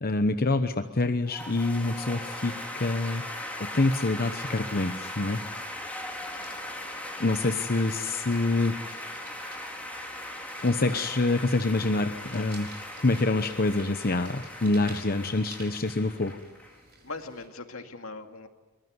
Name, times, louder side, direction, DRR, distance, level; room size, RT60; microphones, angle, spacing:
voice 1, 0.0-3.2 3.6-5.4 7.2-9.0 10.6-12.7 13.0-16.4, left 2 dB, 45° left, 7 dB, 1.0 m, -26 dB
sound 1, 1.3-16.8, left 1 dB, 5° left, 3.9 m, -39 dB
sound 2, 5.9-17.5, right 4 dB, 50° right, 6.1 m, -53 dB
voice 2, 17.0-18.5, left 3 dB, 85° left, 6 dB, 2.2 m, -40 dB
23.5 x 21.5 x 9.5 m, 1.2 s
head